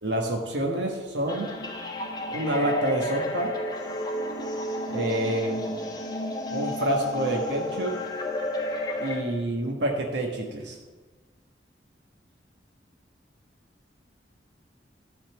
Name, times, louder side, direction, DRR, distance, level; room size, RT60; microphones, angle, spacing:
voice 1, 0.0-1.5 2.3-3.5 4.9-5.6 6.5-7.9 9.0-10.8, right 1 dB, 90° right, 0 dB, 1.4 m, -27 dB
sound 1, 1.3-9.2, left 1 dB, 25° left, 1.2 m, -32 dB
12.5 x 4.2 x 7.1 m, 1.3 s
head